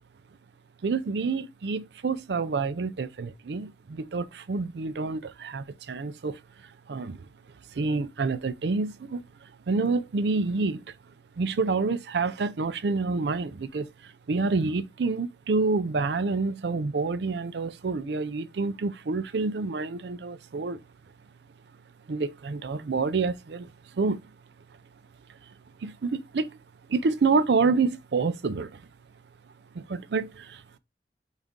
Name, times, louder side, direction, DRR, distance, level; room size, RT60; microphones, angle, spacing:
voice 1, 0.8-7.3 7.7-10.9 11.4-20.8 22.1-24.3 25.8-26.6 26.9-28.8 29.7-30.6, right 4 dB, 75° right, 0.5 m, -28 dB
4.1 x 3.7 x 3.5 m
head